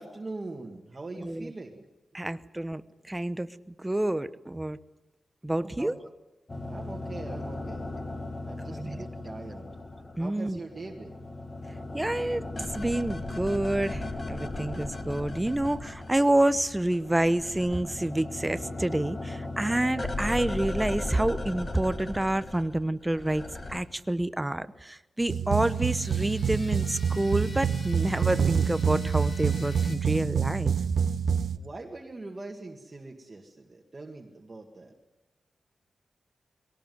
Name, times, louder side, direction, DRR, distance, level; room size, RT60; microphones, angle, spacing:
voice 1, 0.0-1.8 2.2-2.4 5.5-6.0 6.7-7.9 8.4-9.7 10.2-11.2 31.5-34.9, right 2 dB, 30° right, 1 dB, 2.0 m, -42 dB
voice 2, 1.2-1.5 2.1-2.8 3.1-4.8 5.4-6.0 8.8-9.0 10.2-10.6 11.9-12.4 12.7-23.4 23.7-30.7, right 1 dB, 10° right, 14 dB, 0.8 m, -28 dB
sound 1, 6.5-10.3 10.6-16.5 16.8-23.8, left 2 dB, 30° left, 1.9 m, -37 dB
sound 2, 25.3-31.6, right 7 dB, 80° right, 0.8 m, -27 dB
sound 3, 25.5-30.0, left 3 dB, 45° left, 2.9 m, -48 dB
22.0 x 18.0 x 9.5 m, 1.0 s
wide cardioid pair, 130°, 0 cm